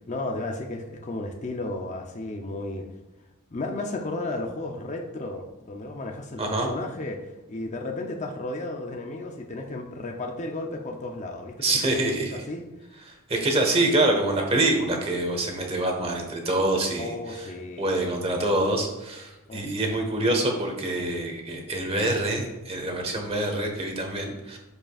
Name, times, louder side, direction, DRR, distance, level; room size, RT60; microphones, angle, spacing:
voice 1, 0.1-2.9 3.5-12.0 12.3-12.6 17.0-17.9 19.5-19.6, left 2 dB, 35° left, 3 dB, 0.6 m, -34 dB
voice 2, 6.4-6.7 11.6-12.4 13.1-17.5 17.8-24.6, right 2 dB, 25° right, 2 dB, 1.2 m, -26 dB
12.5 x 5.1 x 2.4 m, 1.1 s
head